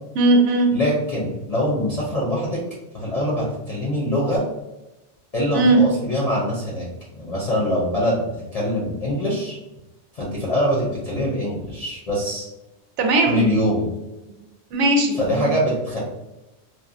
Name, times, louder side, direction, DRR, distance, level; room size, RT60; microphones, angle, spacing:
voice 1, 0.1-0.7 5.5-5.8 13.0-13.5 14.7-15.5, right 2 dB, 90° right, 3 dB, 0.9 m, -18 dB
voice 2, 0.7-2.6 2.9-4.4 5.3-6.9 7.1-9.6 10.1-12.5 13.3-13.9 15.2-16.0, equal, 40° left, -6 dB, 0.6 m, -23 dB
2.9 x 2.2 x 2.5 m, 0.99 s
omnidirectional pair, 1.2 m